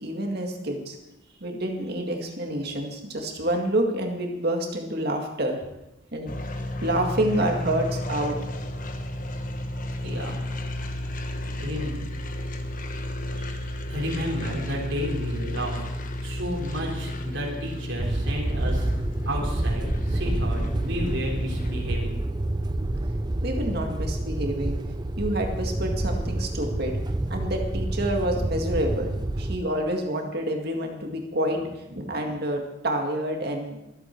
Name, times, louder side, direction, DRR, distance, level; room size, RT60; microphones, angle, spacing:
voice 1, 0.0-1.0 1.4-5.6 6.1-6.3 6.8-8.4 23.4-24.8 25.2-27.0 27.3-33.8, right 1 dB, 55° right, 2 dB, 2.0 m, -28 dB
sound 1, 6.3-21.9, left 1 dB, 45° left, 1.2 m, -33 dB
voice 2, 10.0-10.4 11.6-11.9 13.3-15.8 16.2-18.9 19.2-22.2, equal, 70° right, -3 dB, 3.8 m, -32 dB
sound 2, 18.0-29.6, right 1 dB, 20° right, 0.6 m, -28 dB
25.0 x 8.4 x 4.6 m, 0.92 s
head